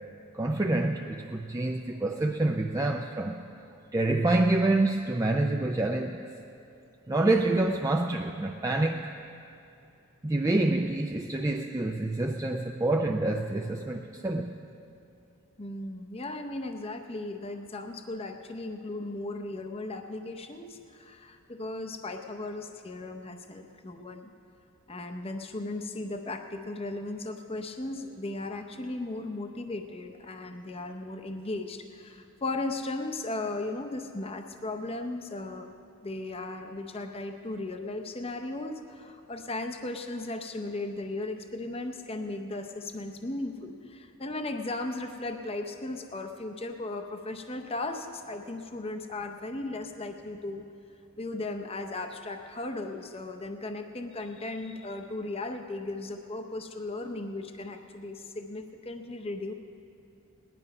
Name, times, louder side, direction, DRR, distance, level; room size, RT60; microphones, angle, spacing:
voice 1, 0.3-3.4 3.9-6.2 7.1-9.1 10.2-14.5, right 2 dB, 15° right, 2 dB, 0.4 m, -27 dB
voice 2, 15.6-24.3 24.9-35.7 36.0-50.6 51.2-59.5, left 2 dB, 25° left, 6 dB, 0.6 m, -36 dB
18.0 x 11.0 x 5.4 m, 2.7 s
head